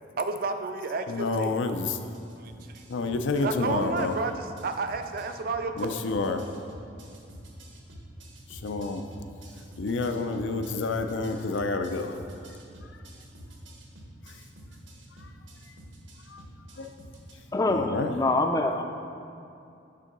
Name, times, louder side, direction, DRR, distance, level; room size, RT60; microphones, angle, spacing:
voice 1, 0.2-1.6 2.3-2.8 3.4-5.9, right 4 dB, 50° right, 7 dB, 0.4 m, -31 dB
voice 2, 1.1-1.9 2.9-4.1 5.8-6.4 8.5-9.0 9.8-12.2 16.3-16.4 16.8-16.9 17.7-18.1, left 3 dB, 80° left, 7 dB, 0.5 m, -29 dB
sound 1, 1.8-17.3, equal, 80° right, 1.1 m, -48 dB
voice 3, 17.5-18.8, left 2 dB, 20° left, 5 dB, 0.4 m, -25 dB
9.0 x 3.7 x 5.3 m, 2.6 s
head